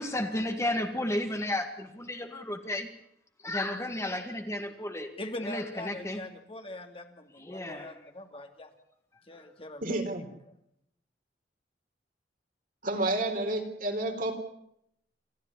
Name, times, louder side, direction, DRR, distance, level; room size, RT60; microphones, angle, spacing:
voice 1, 0.0-2.9 3.4-5.1 5.4-6.2 7.4-7.9 9.4-9.5, left 1 dB, 15° left, 5 dB, 2.1 m, -33 dB
voice 2, 5.2-8.7 9.3-10.0, left 1 dB, 35° left, 5 dB, 2.5 m, -42 dB
voice 3, 9.8-10.3 12.8-14.3, right 2 dB, 50° right, 4 dB, 4.0 m, -30 dB
28.5 x 13.5 x 9.8 m, 0.75 s
head